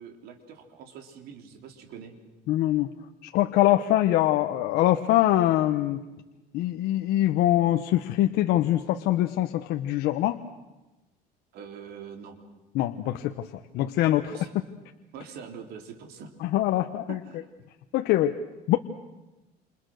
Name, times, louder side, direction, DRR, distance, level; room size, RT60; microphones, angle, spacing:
voice 1, 0.0-2.1 11.5-12.4 14.3-14.6 15.1-16.6 17.1-17.5, right 7 dB, 60° right, 5 dB, 3.7 m, -44 dB
voice 2, 2.5-2.9 3.2-6.0 6.5-10.4 12.7-13.5 13.7-14.4 16.4-17.2 17.9-18.4 18.7-18.8, left 14 dB, 60° left, 6 dB, 1.1 m, -23 dB
28.5 x 28.0 x 6.5 m, 1.1 s
cardioid pair, 160°, 18 cm